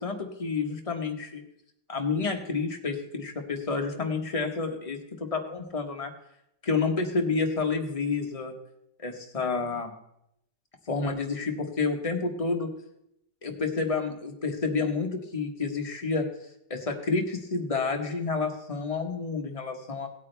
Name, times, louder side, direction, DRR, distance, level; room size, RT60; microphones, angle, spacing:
voice 1, 0.0-1.4 1.9-6.1 6.6-8.5 9.0-9.9 10.9-12.7 13.4-16.3 16.7-20.1, left 4 dB, 25° left, 3 dB, 1.1 m, -29 dB
17.5 x 8.5 x 3.3 m, 0.79 s
omnidirectional pair, 1.9 m